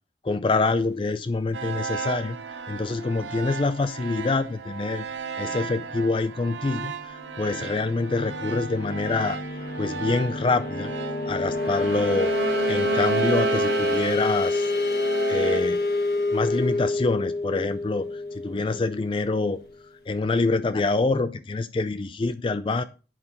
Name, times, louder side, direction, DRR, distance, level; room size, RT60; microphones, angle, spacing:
voice 1, 0.2-2.4 2.7-5.1 5.4-9.4 9.8-10.9 11.3-14.7 15.3-15.8 16.3-19.6 20.1-22.8, left 3 dB, 30° left, 12 dB, 0.3 m, -26 dB
sound 1, 1.5-15.6, right 6 dB, 90° right, 0.8 m, -33 dB
sound 2, 7.2-19.8, left 2 dB, 55° left, 1.2 m, -28 dB
10.0 x 5.5 x 4.3 m, 0.35 s
head